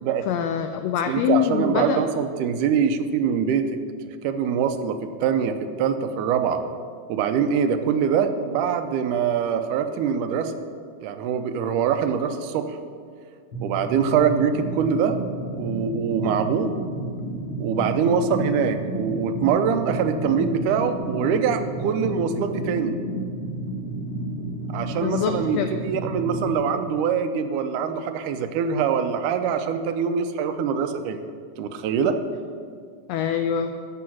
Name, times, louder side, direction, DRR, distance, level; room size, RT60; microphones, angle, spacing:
voice 1, 0.3-2.0 25.0-25.7 33.1-33.7, left 8 dB, 90° left, 7 dB, 1.5 m, -24 dB
voice 2, 1.1-3.7 4.2-6.6 7.1-10.5 11.0-12.8 13.6-15.2 15.6-16.7 17.6-23.0 24.7-31.2 31.6-32.2, right 7 dB, 85° right, 9 dB, 2.2 m, -24 dB
sound 1, 13.5-26.5, right 1 dB, 40° left, 1.6 m, -31 dB
12.5 x 6.1 x 5.9 m, 2.1 s
omnidirectional pair, 3.5 m